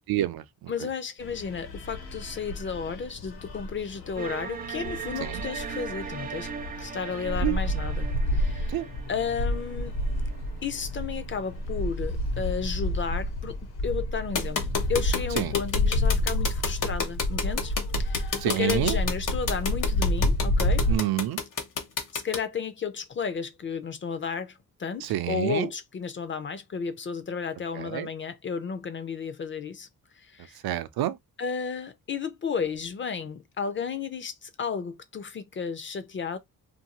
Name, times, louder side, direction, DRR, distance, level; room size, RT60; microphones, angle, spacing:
voice 1, 0.1-0.7 5.2-5.4 7.4-7.6 8.7-8.8 15.4-15.5 18.4-19.0 20.9-21.4 25.0-25.7 27.8-28.1 30.6-31.2, right 13 dB, 80° right, 0.5 m, -28 dB
voice 2, 0.7-6.5 6.8-8.8 9.1-9.9 10.6-13.6 13.8-14.6 14.9-20.9 22.1-29.9 30.2-30.6 31.4-36.4, left 6 dB, 35° left, 0.4 m, -33 dB
sound 1, 1.2-21.0, left 1 dB, 85° left, 1.2 m, -30 dB
sound 2, 4.2-11.1, right 7 dB, 25° right, 0.3 m, -39 dB
sound 3, 14.4-22.4, left 6 dB, 60° left, 1.0 m, -28 dB
2.6 x 2.6 x 2.9 m
cardioid pair, 130°, 36 cm